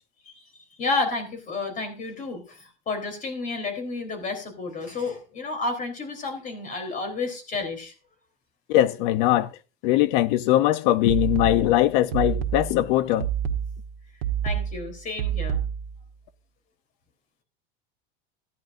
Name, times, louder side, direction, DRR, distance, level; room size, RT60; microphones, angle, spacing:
voice 1, 0.8-7.9 14.4-15.6, left 3 dB, 25° left, 3.7 m, -31 dB
voice 2, 8.7-9.5 9.8-13.3, left 14 dB, 60° left, 0.8 m, -21 dB
sound 1, 11.1-16.1, right 9 dB, 85° right, 1.4 m, -28 dB
15.0 x 10.5 x 2.6 m
supercardioid pair, 145°, 29 cm